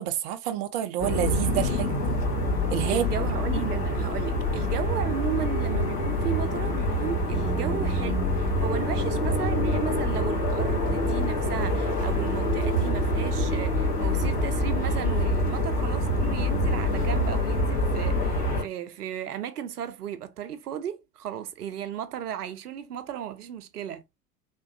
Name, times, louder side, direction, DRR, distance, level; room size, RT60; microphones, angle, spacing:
voice 1, 0.0-1.9 2.7-3.1 3.5-3.7, right 12 dB, 35° right, 0.4 m, -28 dB
sound 1, 1.0-18.6, left 1 dB, 55° left, 1.9 m, -26 dB
voice 2, 2.9-24.0, right 9 dB, 75° right, 0.6 m, -35 dB
3.5 x 2.2 x 2.5 m
figure-of-eight pair, 80°, 47 cm